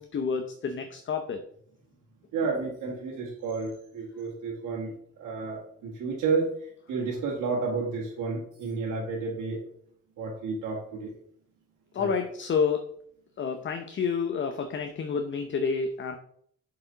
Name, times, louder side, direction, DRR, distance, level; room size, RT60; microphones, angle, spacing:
voice 1, 0.0-1.4 11.9-12.9 13.4-16.2, left 5 dB, 40° left, 6 dB, 0.7 m, -29 dB
voice 2, 2.3-4.9 5.2-6.5 6.9-9.6 10.2-11.1 12.0-12.1, right 4 dB, 80° right, -4 dB, 1.8 m, -31 dB
7.2 x 4.9 x 3.9 m, 0.64 s
cardioid pair, 90°, 30 cm